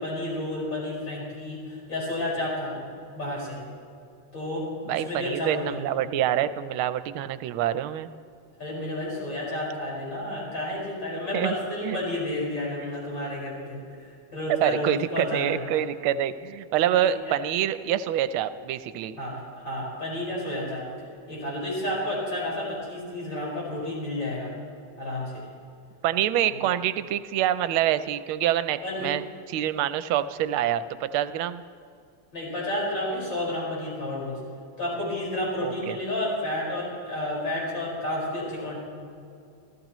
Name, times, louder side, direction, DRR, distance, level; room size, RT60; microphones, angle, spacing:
voice 1, 0.0-2.8 3.1-3.6 4.3-5.8 8.6-15.6 17.0-17.3 19.2-20.8 21.3-24.5 25.0-25.4 26.5-26.6 28.8-29.1 32.3-34.3 34.8-38.8, left 1 dB, 60° left, -5 dB, 5.9 m, -31 dB
voice 2, 4.9-8.1 11.3-11.5 11.8-12.0 14.6-19.2 26.0-29.2 29.5-31.6 35.6-36.0, right 11 dB, 80° right, 13 dB, 1.4 m, -26 dB
25.5 x 15.0 x 3.1 m, 2.5 s
omnidirectional pair, 2.4 m